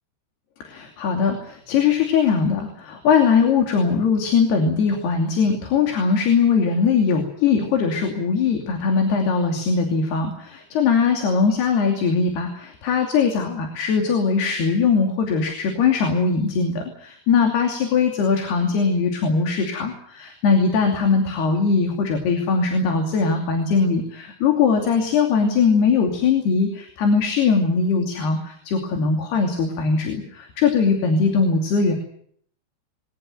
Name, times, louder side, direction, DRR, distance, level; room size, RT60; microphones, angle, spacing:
voice 1, 0.6-31.9, left 5 dB, 80° left, 4 dB, 4.8 m, -20 dB
22.5 x 18.5 x 9.1 m, 0.64 s
omnidirectional pair, 4.6 m